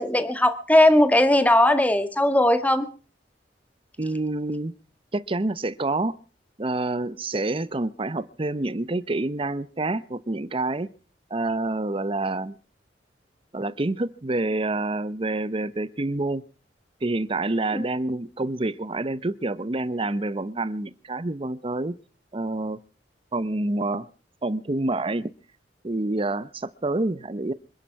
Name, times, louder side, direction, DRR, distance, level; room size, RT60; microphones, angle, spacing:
voice 1, 0.0-2.9 17.7-17.8, left 1 dB, 10° left, 9 dB, 1.5 m, -18 dB
voice 2, 4.0-4.7 5.1-6.2 6.6-10.9 11.3-12.5 13.5-16.4 17.0-21.9 22.3-22.8 23.3-24.1 24.4-25.3 25.8-27.5, right 2 dB, 30° right, 16 dB, 0.8 m, -27 dB
26.0 x 10.5 x 4.7 m, 0.37 s
head